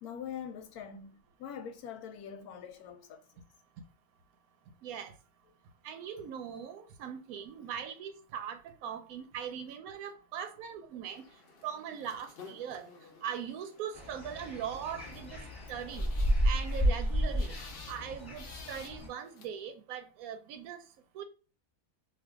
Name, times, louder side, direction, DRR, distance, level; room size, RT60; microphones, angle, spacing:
voice 1, 0.0-3.2, left 8 dB, 80° left, 1.1 m, -43 dB
voice 2, 4.8-5.1 5.8-11.2 11.6-12.8 13.2-15.4 15.7-16.1 16.4-17.5 17.9-20.8 21.1-21.2, right 8 dB, 70° right, 1.0 m, -40 dB
sound 1, 11.0-19.5, left 5 dB, 60° left, 0.6 m, -53 dB
sound 2, 13.9-19.1, equal, 15° left, 0.9 m, -32 dB
2.7 x 2.4 x 3.5 m
omnidirectional pair, 1.6 m